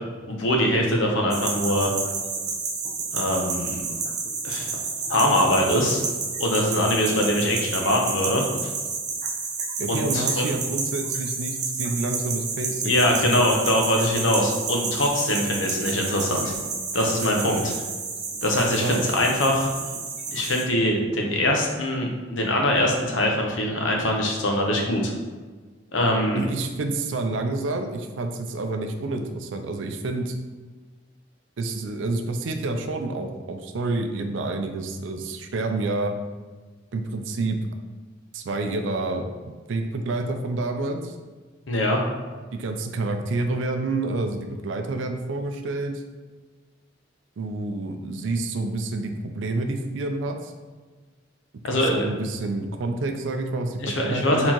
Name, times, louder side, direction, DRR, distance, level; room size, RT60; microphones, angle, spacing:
voice 1, 0.3-1.9 3.1-3.8 4.4-4.7 5.1-6.0 6.4-8.4 9.9-10.4 12.8-16.5 16.9-17.7 18.4-19.7 20.3-25.1 25.9-26.4 41.7-42.0 51.6-52.1 53.8-54.5, left 1 dB, 90° left, 1 dB, 0.9 m, -23 dB
sound 1, 1.3-20.6, right 4 dB, 40° right, 0.6 m, -30 dB
voice 2, 9.8-13.5 18.8-19.1 26.3-30.3 31.6-36.1 36.9-37.6 38.3-41.1 42.5-46.0 47.4-50.5 51.7-54.5, right 2 dB, 75° right, 5 dB, 0.4 m, -28 dB
4.4 x 3.7 x 2.9 m, 1.4 s
head